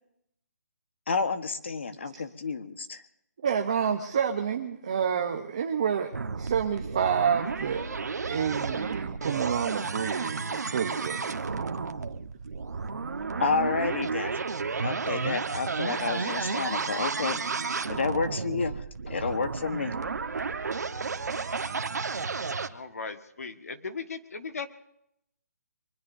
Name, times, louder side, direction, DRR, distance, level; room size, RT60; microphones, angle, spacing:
voice 1, 1.1-3.0 13.4-14.3 14.8-17.4 17.9-19.9, left 5 dB, 45° left, 9 dB, 1.2 m, -30 dB
voice 2, 3.4-7.8 8.2-11.7, right 7 dB, 25° right, 4 dB, 0.8 m, -29 dB
sound 1, 6.1-22.7, right 4 dB, 90° right, 1.2 m, -32 dB
voice 3, 22.7-24.7, left 5 dB, 65° left, 8 dB, 1.6 m, -37 dB
24.0 x 20.5 x 2.7 m, 0.77 s
hypercardioid pair, 180°, 9 cm